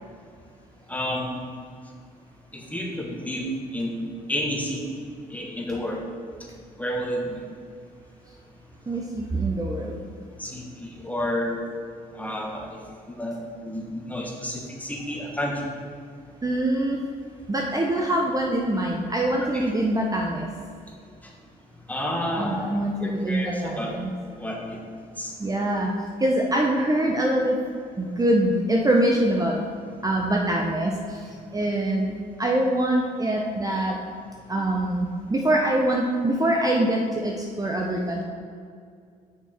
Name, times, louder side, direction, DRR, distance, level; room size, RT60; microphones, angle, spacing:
voice 1, 0.9-1.3 2.5-4.8 5.3-6.0 6.8-7.3 10.4-11.6 12.1-12.8 13.2-13.4 13.6-15.6 19.4-19.6 21.9-22.7 23.0-23.9 24.4-24.8 25.2-25.3, equal, 10° left, -1 dB, 1.4 m, -30 dB
voice 2, 8.9-10.0 16.4-17.0 17.5-20.5 22.4-24.1 25.4-25.9 26.2-27.6 28.0-29.6 30.0-31.2 31.5-34.0 34.5-38.2, right 1 dB, 20° right, 0 dB, 0.7 m, -24 dB
6.1 x 5.8 x 4.4 m, 2.2 s
supercardioid pair, 75°, 16 cm